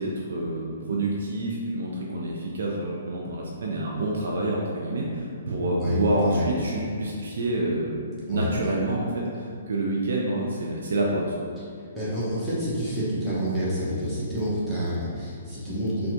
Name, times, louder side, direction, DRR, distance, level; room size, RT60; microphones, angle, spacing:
voice 1, 0.0-8.0 8.3-11.5, right 1 dB, 55° right, -3 dB, 0.4 m, -27 dB
voice 2, 11.9-16.1, equal, 5° right, -11 dB, 1.1 m, -28 dB
4.1 x 2.3 x 2.7 m, 2.3 s
figure-of-eight pair, 125°, 0 cm